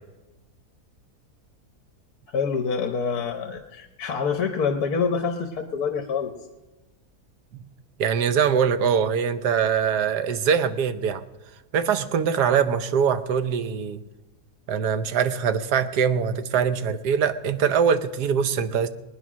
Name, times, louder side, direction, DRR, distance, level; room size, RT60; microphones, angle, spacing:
voice 1, 2.3-6.3, left 5 dB, 70° left, 4 dB, 1.5 m, -26 dB
voice 2, 8.0-11.2 11.7-14.0 14.7-18.9, right 7 dB, 85° right, 11 dB, 1.4 m, -23 dB
19.5 x 9.8 x 6.2 m, 1.1 s
omnidirectional pair, 1.7 m